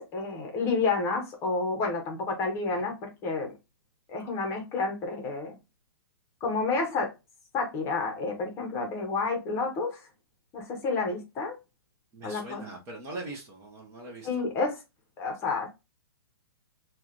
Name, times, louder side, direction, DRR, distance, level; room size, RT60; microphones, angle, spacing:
voice 1, 0.0-3.5 4.1-5.6 6.4-7.1 7.5-10.0 10.5-11.6 12.2-12.7 14.2-14.8 15.2-15.7, left 4 dB, 20° left, 1.0 m, -30 dB
voice 2, 12.1-14.4, right 2 dB, 20° right, 1.0 m, -41 dB
4.7 x 2.5 x 2.9 m
hypercardioid pair, 155°, 13 cm